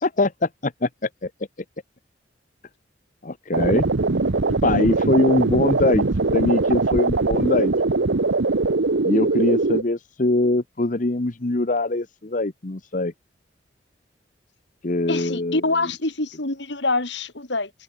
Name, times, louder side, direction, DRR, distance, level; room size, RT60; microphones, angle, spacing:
voice 1, 0.0-1.3 3.2-3.8 4.6-6.0 6.3-7.7 9.0-13.1 14.8-15.6, left 2 dB, 45° left, 1.0 m, -22 dB
sound 1, 3.5-9.8, right 3 dB, 70° right, 0.9 m, -21 dB
voice 2, 15.1-17.7, left 2 dB, 70° left, 3.8 m, -25 dB
open air
head